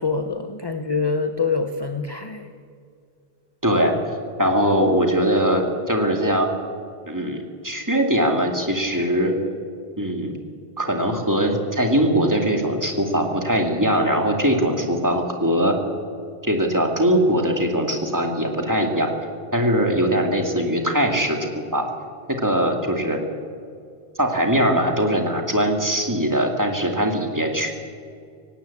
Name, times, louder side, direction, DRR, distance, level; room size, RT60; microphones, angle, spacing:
voice 1, 0.0-2.5 4.4-4.5, left 4 dB, 25° left, 8 dB, 0.8 m, -25 dB
voice 2, 3.6-3.9 4.4-6.5 7.1-9.3 10.0-10.4 10.8-15.8 16.4-19.1 19.5-21.9 22.4-23.2 24.2-27.7, equal, 15° right, 2 dB, 2.3 m, -21 dB
18.0 x 17.5 x 8.5 m, 2.3 s
omnidirectional pair, 1.1 m